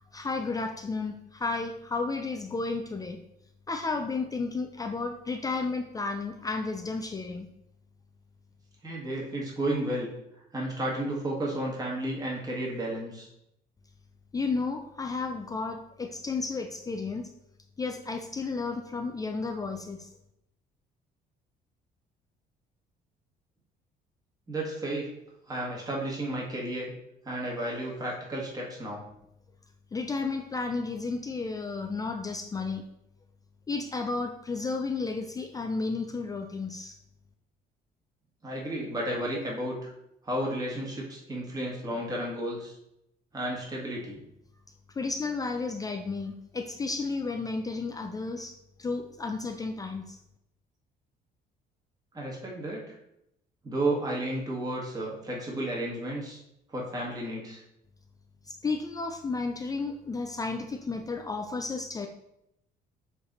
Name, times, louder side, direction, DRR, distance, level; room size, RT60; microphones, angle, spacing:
voice 1, 0.1-3.2 3.7-7.5 14.3-17.2 17.8-20.1 29.9-32.8 33.7-37.0 45.0-48.5 48.8-50.2 58.5-62.1, left 3 dB, 20° left, 5 dB, 0.4 m, -32 dB
voice 2, 8.8-10.1 10.5-13.3 24.5-25.1 25.5-26.9 27.2-29.0 38.4-39.9 40.2-42.7 43.3-44.2 52.1-53.0 53.6-56.4 56.7-57.6, right 1 dB, 20° right, -3 dB, 1.9 m, -32 dB
6.8 x 3.3 x 4.1 m, 0.81 s
cardioid pair, 110°, 17 cm